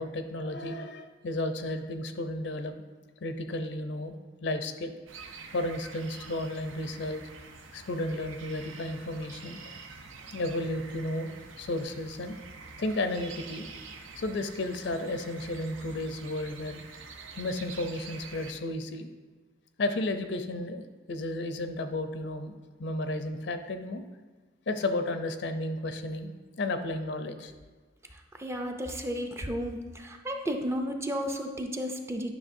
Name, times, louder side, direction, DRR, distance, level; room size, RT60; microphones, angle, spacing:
voice 1, 0.0-2.7 3.2-4.9 5.5-7.2 7.7-9.8 10.3-11.3 11.6-12.4 12.8-13.7 14.2-16.8 17.4-19.1 19.8-22.5 22.8-24.0 24.7-27.5, left 1 dB, 60° left, 8 dB, 0.5 m, -33 dB
sound 1, 5.1-18.5, right 4 dB, 90° right, 0.6 m, -47 dB
voice 2, 28.4-32.3, equal, 15° right, 4 dB, 0.4 m, -33 dB
9.9 x 5.8 x 2.6 m, 1.4 s
head